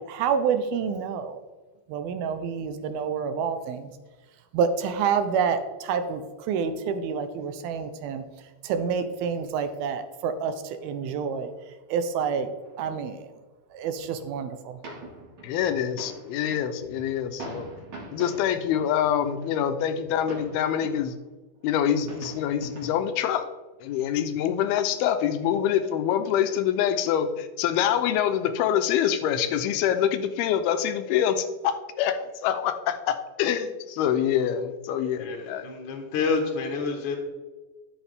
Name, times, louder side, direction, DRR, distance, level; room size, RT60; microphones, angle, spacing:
voice 1, 0.0-1.4 1.9-3.9 4.5-8.2 8.6-11.5 11.9-12.5 12.8-13.3 13.7-14.8, right 6 dB, 85° right, 9 dB, 2.6 m, -28 dB
sound 1, 12.6-13.1 13.7-13.8 14.0-14.3 14.8-21.1 21.5-21.6 21.8-23.2 23.7-23.8, right 2 dB, 40° right, 2.1 m, -43 dB
voice 2, 15.4-17.7 18.1-21.1 21.6-23.5 23.8-35.6, left 9 dB, 85° left, 9 dB, 2.7 m, -25 dB
voice 3, 35.1-37.2, left 4 dB, 65° left, 1 dB, 2.4 m, -28 dB
11.5 x 8.1 x 3.5 m, 1.3 s
omnidirectional pair, 4.4 m